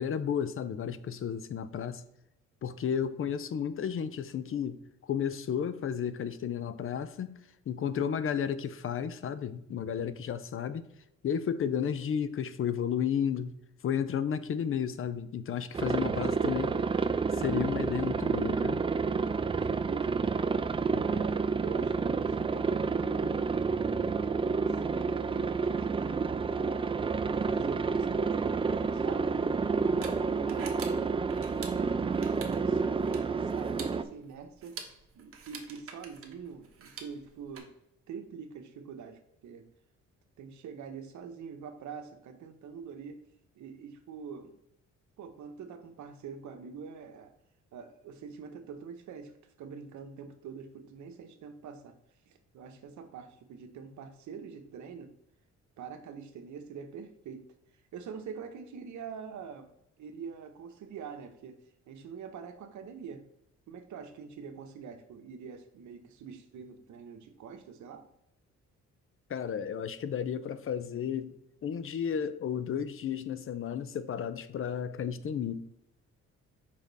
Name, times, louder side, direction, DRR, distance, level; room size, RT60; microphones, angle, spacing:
voice 1, 0.0-2.0 2.6-7.4 7.7-10.9 11.2-13.5 13.8-16.8 17.3-18.8 20.9-21.0 69.3-71.3 71.6-75.6, left 8 dB, 45° left, 0.5 m, -33 dB
Aircraft, 15.7-34.0, right 5 dB, 20° right, 0.4 m, -29 dB
voice 2, 19.5-20.5 21.0-23.5 24.0-26.9 27.2-29.6 30.0-31.1 31.8-34.8 35.1-37.7 38.1-39.7 40.4-43.2 43.5-44.6 45.2-47.3 47.7-49.3 49.6-52.0 52.3-55.1 55.8-57.5 57.9-59.7 60.0-61.6 61.9-63.2 63.7-68.1, right 6 dB, 70° right, 0.9 m, -45 dB
sound 1, 28.9-37.6, right 5 dB, 45° right, 1.2 m, -48 dB
5.1 x 5.0 x 4.0 m
cardioid pair, 90°, 30 cm